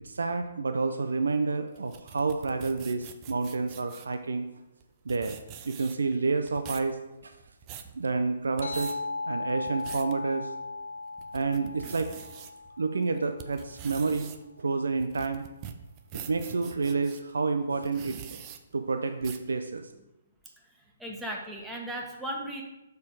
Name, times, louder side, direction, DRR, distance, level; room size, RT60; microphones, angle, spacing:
voice 1, 0.0-4.5 5.1-5.4 5.6-7.0 7.2-7.4 8.0-9.0 9.2-10.5 11.3-12.2 12.8-14.3 14.6-15.4 16.3-18.4 18.7-19.9, right 4 dB, 75° right, 7 dB, 0.5 m, -29 dB
sound 1, 1.8-4.2 4.8-4.9 5.1-6.1 6.5-6.9 7.4-7.9 8.4-8.9 9.5-10.1 10.6-10.7 11.2-12.5 13.0-17.2 17.8-18.6 19.2-19.5, right 9 dB, 30° right, 0.7 m, -44 dB
sound 2, 8.6-13.6, left 3 dB, 65° left, 1.4 m, -37 dB
voice 2, 21.0-22.6, right 1 dB, 5° right, -1 dB, 1.4 m, -36 dB
7.1 x 4.6 x 4.8 m, 0.96 s
figure-of-eight pair, 130°, 0 cm